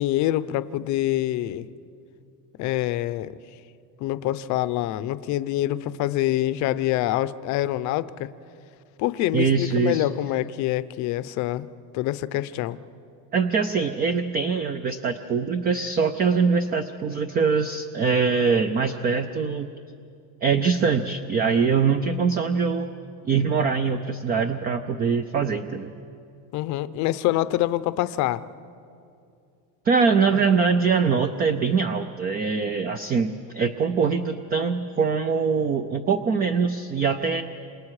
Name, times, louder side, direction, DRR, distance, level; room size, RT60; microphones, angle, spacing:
voice 1, 0.0-1.7 2.6-3.3 4.0-8.3 9.0-11.7 11.9-12.8 26.5-28.4 30.3-30.4, left 14 dB, 45° left, 15 dB, 0.7 m, -25 dB
voice 2, 9.3-10.1 13.3-19.7 20.4-22.9 23.3-25.9 29.8-37.4, right 5 dB, 25° right, 9 dB, 0.5 m, -23 dB
28.0 x 27.0 x 4.9 m, 2.5 s
cardioid pair, 170°, 41 cm